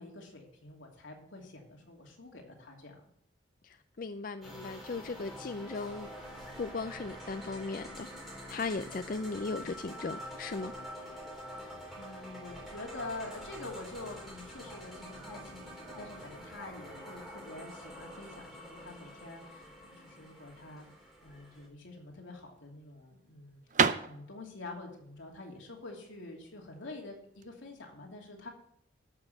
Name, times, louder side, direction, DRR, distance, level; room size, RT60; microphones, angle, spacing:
voice 1, 0.0-3.1 11.6-20.9 21.2-23.6 24.0-28.5, left 2 dB, 80° left, 0 dB, 2.8 m, -46 dB
voice 2, 3.6-6.1 6.6-8.1 8.5-10.7, left 3 dB, 45° left, 9 dB, 0.4 m, -37 dB
sound 1, 4.4-21.7, equal, ahead, 3.7 m, -46 dB
sound 2, 21.9-27.5, right 6 dB, 40° right, 0.5 m, -33 dB
13.0 x 6.2 x 7.0 m, 0.69 s
head